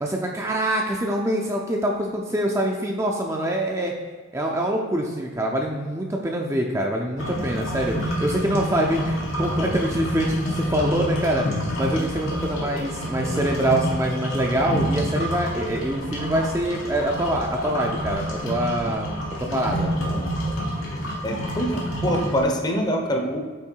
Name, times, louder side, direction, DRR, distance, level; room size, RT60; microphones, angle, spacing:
voice 1, 0.0-3.9 4.3-19.9, right 1 dB, 15° right, 0 dB, 0.5 m, -25 dB
sound 1, 7.2-22.4, equal, 85° left, 1.6 m, -28 dB
voice 2, 21.2-23.4, equal, 20° left, 2 dB, 0.7 m, -24 dB
8.4 x 3.2 x 4.5 m, 1.5 s
head